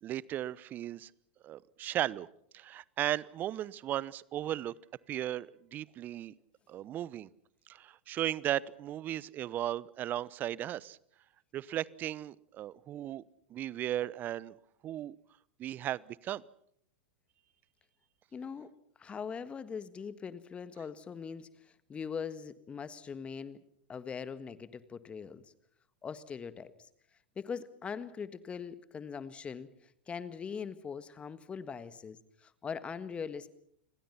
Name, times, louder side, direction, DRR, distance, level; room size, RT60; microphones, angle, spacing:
voice 1, 0.0-1.1 1.4-2.3 2.5-4.7 5.1-6.3 6.7-7.3 7.7-11.0 11.5-13.2 13.5-14.6 14.8-15.2 15.6-16.4, right 12 dB, 35° right, 23 dB, 0.9 m, -36 dB
voice 2, 18.3-18.7 19.0-21.5 21.9-23.6 23.9-25.4 26.0-26.7 27.3-29.7 30.1-33.5, left 6 dB, 20° left, 14 dB, 1.7 m, -41 dB
29.5 x 21.5 x 5.8 m, 0.68 s
hypercardioid pair, 100°, 6 cm